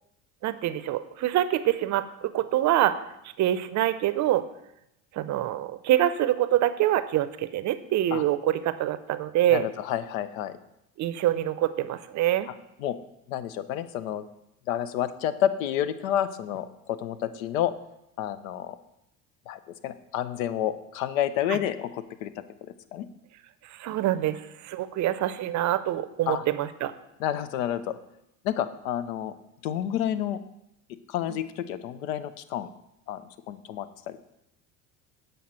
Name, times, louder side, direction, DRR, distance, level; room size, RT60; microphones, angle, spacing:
voice 1, 0.4-3.0 3.4-4.4 5.1-9.6 11.0-12.5 21.5-21.6 23.7-26.9 31.3-31.4, right 13 dB, 45° right, 13 dB, 0.5 m, -25 dB
voice 2, 9.5-10.6 12.8-13.0 13.3-14.2 14.7-17.7 18.2-18.8 19.5-22.3 22.9-23.1 26.3-26.4 27.2-27.9 28.4-29.3 29.6-30.4 31.1-32.7 33.1-33.2 33.5-34.2, left 11 dB, 80° left, 13 dB, 0.6 m, -29 dB
7.5 x 5.3 x 4.2 m, 0.85 s
hypercardioid pair, 80°, 40 cm